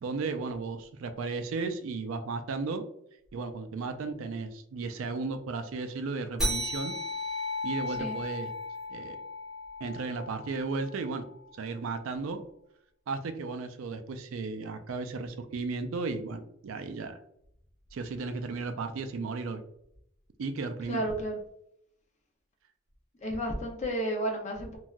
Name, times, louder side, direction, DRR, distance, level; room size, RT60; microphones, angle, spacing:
voice 1, 0.0-2.8 3.3-6.9 7.6-8.5 8.9-9.2 9.8-11.2 11.5-12.4 13.1-17.2 17.9-19.6 20.4-21.0, right 4 dB, 65° right, 8 dB, 0.3 m, -34 dB
sound 1, 6.4-11.3, left 1 dB, ahead, 1.1 m, -35 dB
voice 2, 20.9-21.4 23.2-24.8, right 1 dB, 30° left, 1 dB, 0.6 m, -32 dB
3.2 x 2.6 x 2.3 m, 0.74 s
head